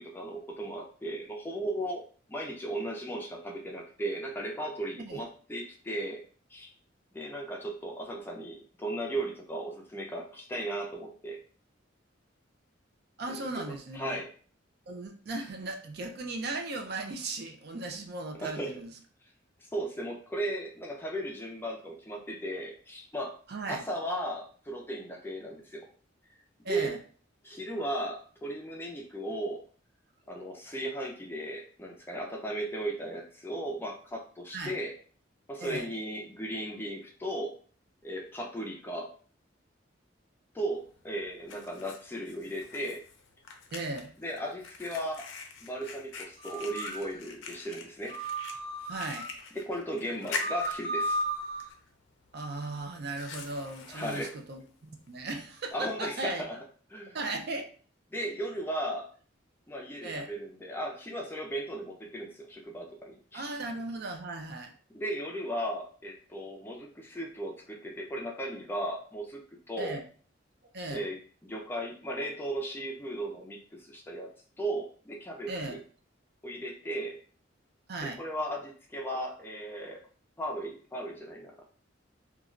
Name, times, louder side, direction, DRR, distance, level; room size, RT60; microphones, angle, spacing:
voice 1, 0.0-2.0 2.3-6.2 6.5-6.7 7.1-11.4 13.3-14.3 18.4-18.7 19.6-23.4 23.7-25.9 26.7-27.0 27.4-29.6 30.3-34.9 35.5-37.5 38.0-39.1 40.5-43.0 44.2-45.3 45.6-48.2 49.5-51.2 53.9-54.3 55.7-56.6 56.9-57.2 58.1-59.1 59.7-63.5 64.9-69.4 69.7-70.0 70.9-74.3 74.6-75.8 76.4-77.2 78.2-80.0 80.4-81.6, right 1 dB, 10° left, 0 dB, 0.4 m, -36 dB
voice 2, 13.2-14.2 14.9-18.9 23.5-23.8 26.6-27.0 34.5-34.8 35.6-35.9 43.7-44.1 48.9-49.3 52.3-56.4 57.1-57.6 60.0-60.3 63.3-64.7 69.8-70.0 70.7-71.0 75.5-75.8 77.9-78.2, right 2 dB, 55° right, 4 dB, 0.4 m, -37 dB
Fire, 40.8-55.7, left 4 dB, 70° left, 0.5 m, -45 dB
sound 1, 46.4-47.1 48.1-49.3 50.2-51.7, right 1 dB, 80° right, 1.1 m, -34 dB
3.1 x 2.2 x 2.4 m, 0.42 s
head